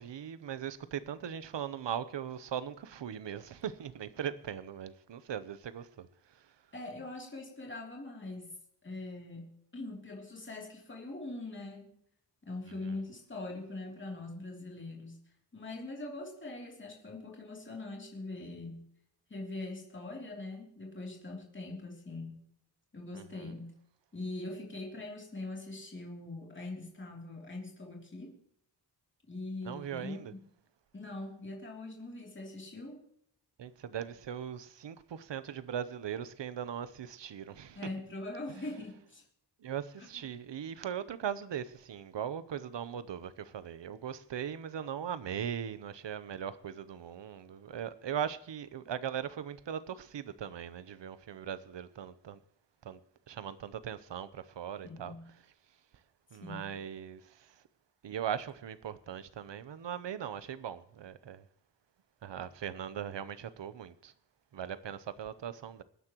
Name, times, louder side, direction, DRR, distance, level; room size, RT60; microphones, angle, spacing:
voice 1, 0.0-6.1 6.3-6.4 12.8-13.0 23.1-23.5 29.6-30.3 33.6-37.8 39.6-52.4 52.8-53.0 53.3-55.1 56.3-57.6 58.0-61.4 62.2-64.1 64.5-65.8, right 9 dB, 80° right, 0.8 m, -39 dB
voice 2, 6.7-8.5 8.8-11.9 12.5-15.2 15.5-18.9 19.3-22.4 22.9-23.8 24.1-28.4 29.3-30.4 30.9-33.0 37.7-39.2 40.0-40.2 54.8-55.3 56.4-56.7, left 2 dB, 25° left, 2.9 m, -42 dB
25.0 x 9.8 x 3.0 m
wide cardioid pair, 165°, 43 cm